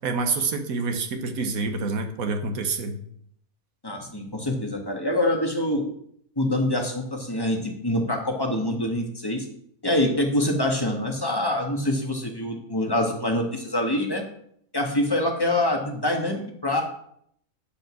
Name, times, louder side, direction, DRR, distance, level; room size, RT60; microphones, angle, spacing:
voice 1, 0.0-2.9, right 4 dB, 90° right, 6 dB, 1.5 m, -27 dB
voice 2, 3.8-5.9 6.4-9.4 9.8-14.2 14.7-16.8, left 1 dB, 15° left, 2 dB, 1.5 m, -25 dB
10.0 x 5.2 x 6.1 m, 0.69 s
omnidirectional pair, 1.4 m